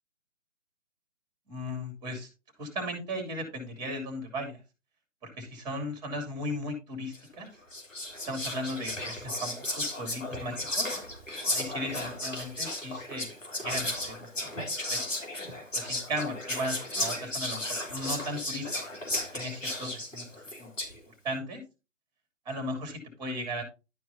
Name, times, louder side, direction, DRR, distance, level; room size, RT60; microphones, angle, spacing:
voice 1, 1.5-2.3 2.6-4.6 5.2-7.5 8.3-10.9 11.5-13.3 13.6-14.3 14.9-15.1 15.7-17.6 17.9-18.7 19.3-20.3 20.6-20.7 21.2-21.6 22.4-23.6, equal, 10° right, 6 dB, 2.5 m, -36 dB
Whispering, 7.1-7.3 7.7-21.0, left 1 dB, 75° left, 3.5 m, -34 dB
11.5 x 4.6 x 4.1 m, 0.28 s
figure-of-eight pair, 140°, 39 cm